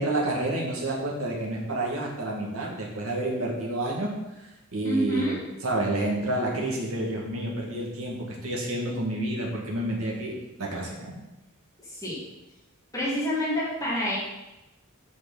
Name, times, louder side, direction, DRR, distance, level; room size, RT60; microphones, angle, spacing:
voice 1, 0.0-4.1 4.4-5.4 5.6-10.3 10.6-11.1, right 1 dB, 80° right, -2 dB, 2.1 m, -29 dB
voice 2, 4.8-5.4 11.8-12.2 12.9-14.2, equal, 15° left, -7 dB, 2.2 m, -27 dB
8.0 x 6.4 x 4.1 m, 0.97 s
head